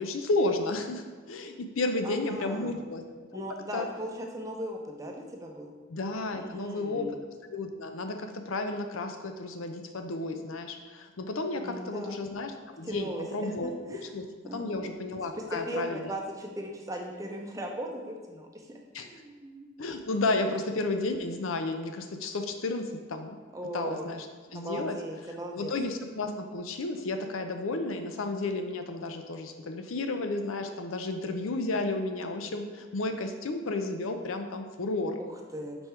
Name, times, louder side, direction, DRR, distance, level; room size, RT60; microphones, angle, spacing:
voice 1, 0.0-3.0 3.3-3.4 3.7-3.9 5.9-7.2 7.5-14.2 14.5-16.1 18.9-19.1 19.8-23.4 23.7-24.3 24.5-25.0 25.5-35.2, left 2 dB, 85° left, 6 dB, 0.6 m, -32 dB
voice 2, 2.0-2.8 3.3-5.7 6.3-7.2 11.6-12.2 12.8-13.5 13.9-14.1 14.4-14.8 15.3-19.7 23.5-24.1 24.5-25.7 35.2-35.8, right 1 dB, 15° right, 1 dB, 0.6 m, -38 dB
5.4 x 4.4 x 4.5 m, 1.5 s
head